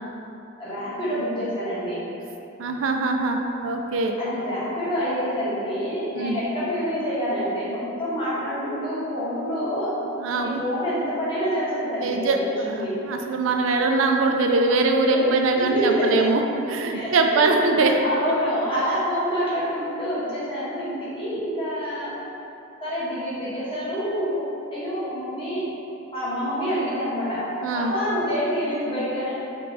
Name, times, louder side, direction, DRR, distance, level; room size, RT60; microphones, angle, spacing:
voice 1, 0.6-2.0 4.2-10.0 10.4-13.0 15.1-16.3 16.9-17.5 18.0-22.2 22.8-24.4 24.7-25.6 26.1-29.3, equal, 25° left, -10 dB, 1.3 m, -27 dB
voice 2, 2.6-4.2 6.1-6.4 10.2-10.6 12.0-12.4 12.7-16.4 16.7-18.0 27.6-27.9, right 3 dB, 70° right, 3 dB, 0.4 m, -22 dB
5.3 x 2.3 x 4.0 m, 2.9 s
head